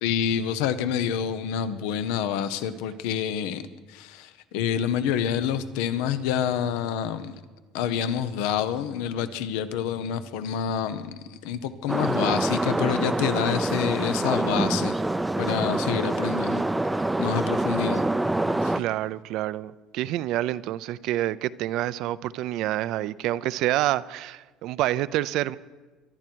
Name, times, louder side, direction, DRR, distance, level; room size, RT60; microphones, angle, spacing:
voice 1, 0.0-3.6 3.9-7.4 7.7-15.0 15.4-16.6 17.2-18.0 18.6-18.7, left 9 dB, 80° left, 0.9 m, -27 dB
sound 1, 11.9-18.8, right 2 dB, 10° right, 0.5 m, -26 dB
voice 2, 18.8-25.6, right 14 dB, 65° right, 0.5 m, -27 dB
23.5 x 11.5 x 4.6 m
supercardioid pair, 110°, 0 cm